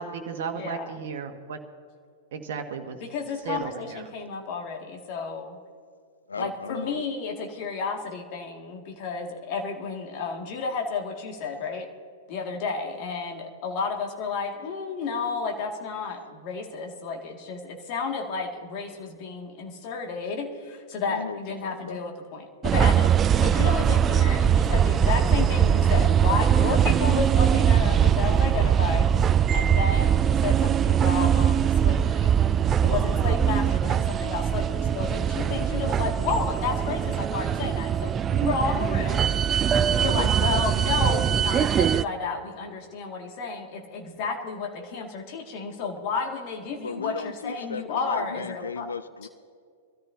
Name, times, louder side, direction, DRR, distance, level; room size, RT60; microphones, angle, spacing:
voice 1, 0.0-1.6 2.3-3.0 3.4-4.0, right 6 dB, 60° right, 4 dB, 1.4 m, -34 dB
voice 2, 0.5-0.8 3.0-5.6 6.4-11.9 12.3-23.1 23.4-32.3 32.8-39.2 39.5-48.9, left 4 dB, 45° left, 2 dB, 2.2 m, -32 dB
voice 3, 6.3-7.0 21.0-22.0 40.0-40.6 46.7-49.3, left 5 dB, 80° left, 12 dB, 0.5 m, -36 dB
sound 1, 22.6-42.0, right 8 dB, 25° right, 0.3 m, -22 dB
24.0 x 13.5 x 2.8 m, 2.2 s
figure-of-eight pair, 100°, 0 cm